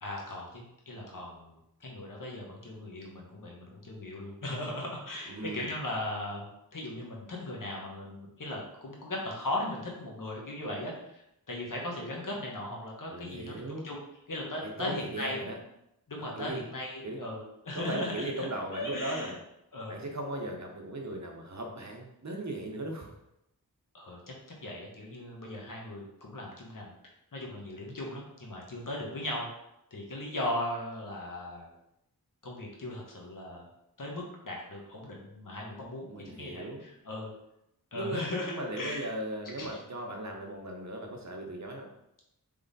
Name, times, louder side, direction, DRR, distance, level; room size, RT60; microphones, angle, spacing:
voice 1, 0.0-11.2 11.5-14.0 14.3-15.4 16.1-18.5 18.7-19.3 19.7-20.0 23.9-24.3 24.6-26.9 27.3-29.5 29.9-31.7 32.4-33.7 34.0-37.3 37.9-39.1 39.6-39.7, left 1 dB, 60° left, -2 dB, 1.2 m, -38 dB
voice 2, 5.3-5.7 13.1-13.9 14.6-15.6 16.4-16.6 17.0-17.2 17.7-19.4 19.9-23.1 36.1-36.8 37.9-41.9, right 1 dB, 45° right, 1 dB, 0.9 m, -37 dB
3.6 x 3.3 x 4.1 m, 0.82 s
wide cardioid pair, 50°, 37 cm